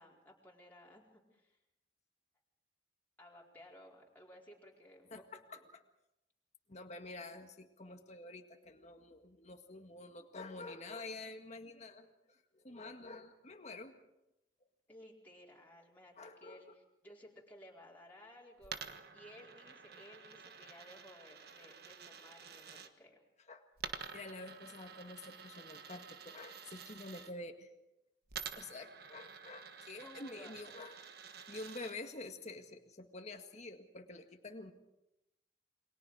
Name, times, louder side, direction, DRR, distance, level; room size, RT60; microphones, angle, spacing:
voice 1, 0.0-1.6 3.2-5.4 14.9-23.2 30.0-30.5, left 1 dB, 10° left, -4 dB, 4.6 m, -57 dB
voice 2, 5.1-5.6 6.7-13.9 16.2-16.7 23.5-23.6 24.1-27.7 28.6-31.1 31.5-34.7, left 2 dB, 40° left, 4 dB, 1.9 m, -48 dB
Coin (dropping), 18.6-22.9 23.8-27.3 28.3-31.9, right 7 dB, 65° right, 1.4 m, -49 dB
28.5 x 23.0 x 4.9 m, 0.91 s
head